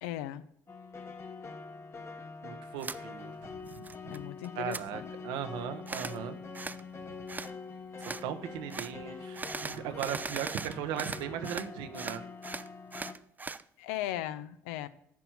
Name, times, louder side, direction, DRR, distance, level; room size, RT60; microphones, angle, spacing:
voice 1, 0.0-0.5 4.1-5.1 13.8-14.9, left 13 dB, 80° left, 14 dB, 0.5 m, -37 dB
sound 1, 0.7-13.1, left 4 dB, 30° left, 1.0 m, -45 dB
voice 2, 2.4-4.1 4.5-6.4 8.0-12.2, right 9 dB, 70° right, 9 dB, 0.8 m, -38 dB
sound 2, 2.8-3.0 3.4-4.2 4.4-4.8 5.9-6.2 6.5-6.8 7.3-7.5 8.0-8.2 8.7-8.9 9.3-11.7 11.9-13.6, right 4 dB, 20° right, 0.4 m, -39 dB
10.5 x 4.4 x 5.9 m, 0.74 s
hypercardioid pair, 60°, 8 cm